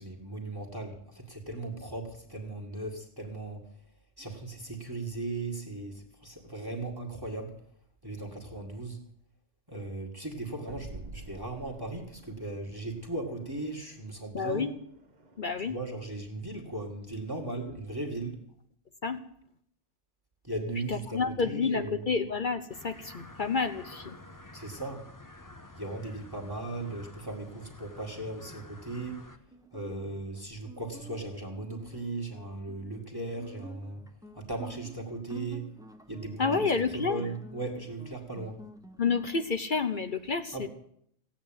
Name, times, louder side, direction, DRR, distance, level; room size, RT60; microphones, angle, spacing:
voice 1, 0.0-3.6 4.2-7.5 8.0-9.0 9.7-14.7 15.7-18.4 20.4-22.1 24.5-25.0 25.8-29.2 29.7-34.0 34.3-35.6 36.1-36.6 36.9-38.6 40.5-40.7, right 2 dB, 20° right, 2 dB, 2.1 m, -37 dB
sound 1, 10.7-15.8, right 2 dB, 40° right, 1.6 m, -50 dB
voice 2, 14.3-14.7 15.4-15.8 19.0-19.2 20.9-24.2 36.4-37.2 39.0-40.7, left 5 dB, 50° left, 8 dB, 1.0 m, -29 dB
sound 2, 22.7-29.4, left 2 dB, 15° left, 1.0 m, -50 dB
Guitar, 29.5-39.5, right 2 dB, 5° right, 0.9 m, -49 dB
16.0 x 8.8 x 9.0 m, 0.68 s
omnidirectional pair, 1.2 m